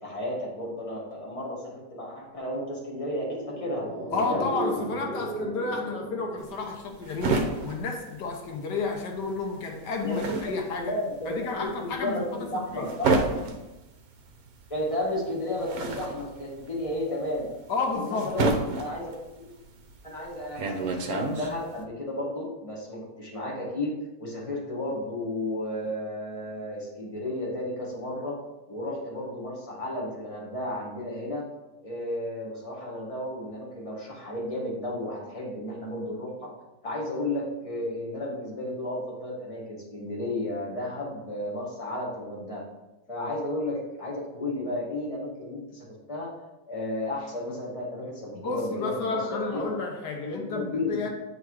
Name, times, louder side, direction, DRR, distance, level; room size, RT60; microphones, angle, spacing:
voice 1, 0.0-3.9 4.2-4.5 10.0-13.1 14.7-17.5 17.9-19.5 20.0-23.9 24.2-28.3 28.7-31.4 31.8-36.5 36.8-42.6 43.1-46.3 46.7-49.7 50.2-51.0, left 1 dB, 20° left, -3 dB, 1.7 m, -33 dB
sound 1, 2.9-7.5 7.7-7.8, right 2 dB, 30° right, 1.1 m, -36 dB
voice 2, 4.1-11.0 11.3-12.9 17.7-18.4 48.3-51.1, left 4 dB, 85° left, 2 dB, 1.5 m, -31 dB
sound 2, 6.4-8.9 9.2-21.8, right 3 dB, 65° right, 1.2 m, -30 dB
8.6 x 4.0 x 4.7 m, 1.0 s
omnidirectional pair, 1.8 m